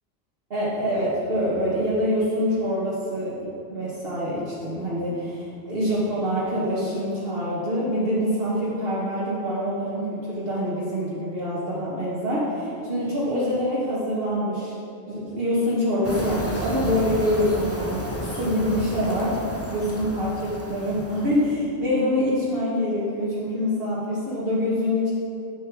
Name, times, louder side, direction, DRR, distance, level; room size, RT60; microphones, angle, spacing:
voice 1, 0.5-14.7 15.1-19.4 19.7-25.1, equal, 55° right, -8 dB, 1.6 m, -25 dB
sound 1, 16.0-21.5, equal, 15° left, 0.6 m, -33 dB
8.5 x 6.8 x 4.8 m, 2.8 s
omnidirectional pair, 1.2 m